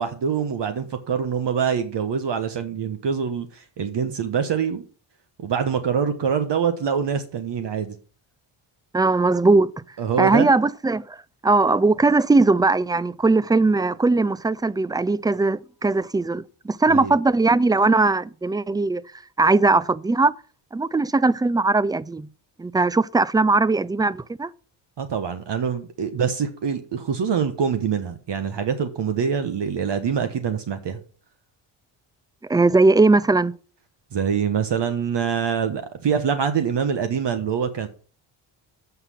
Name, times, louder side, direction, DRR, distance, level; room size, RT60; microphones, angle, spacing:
voice 1, 0.0-4.8 5.4-7.9 10.0-10.5 16.9-17.1 25.0-31.0 34.1-37.9, right 7 dB, 55° right, 1.3 m, -25 dB
voice 2, 8.9-9.7 10.2-11.2 11.4-19.0 19.4-20.3 20.7-22.3 22.6-24.5 32.5-33.5, right 3 dB, 10° right, 0.3 m, -19 dB
8.0 x 5.8 x 7.5 m
cardioid pair, 70°, 49 cm